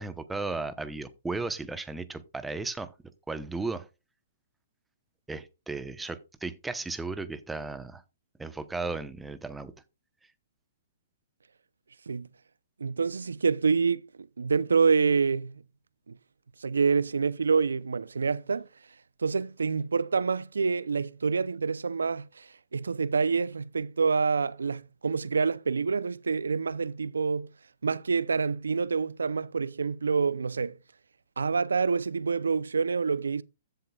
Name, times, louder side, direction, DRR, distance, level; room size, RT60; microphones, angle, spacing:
voice 1, 0.0-2.9 3.3-3.9 5.3-8.0 8.4-9.7, right 3 dB, 5° right, 0.9 m, -35 dB
voice 2, 12.8-15.6 16.1-16.2 16.6-18.7 19.2-27.5 27.8-30.8 31.4-33.4, right 5 dB, 85° right, 0.6 m, -27 dB
14.5 x 7.6 x 2.4 m
hypercardioid pair, 130°, 0 cm